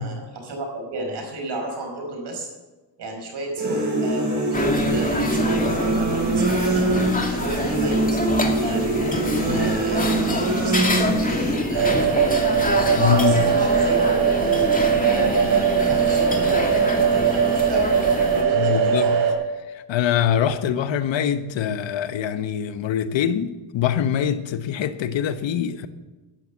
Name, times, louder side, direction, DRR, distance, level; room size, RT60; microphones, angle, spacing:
voice 1, 0.0-2.5 3.0-6.8 7.3-8.2 8.6-10.1 10.5-12.3 13.0-14.2 14.9-17.9 18.3-19.1, right 1 dB, 60° right, 5.2 m, -33 dB
sound 1, 3.6-11.6, right 2 dB, 40° right, 5.6 m, -23 dB
sound 2, 4.5-18.4, left 1 dB, 20° left, 2.3 m, -26 dB
sound 3, 11.7-19.3, right 7 dB, 85° right, 3.5 m, -20 dB
voice 2, 12.9-13.5 18.6-19.2 19.9-25.9, left 9 dB, 75° left, 1.1 m, -23 dB
12.0 x 11.0 x 7.3 m
cardioid pair, 85°, 45 cm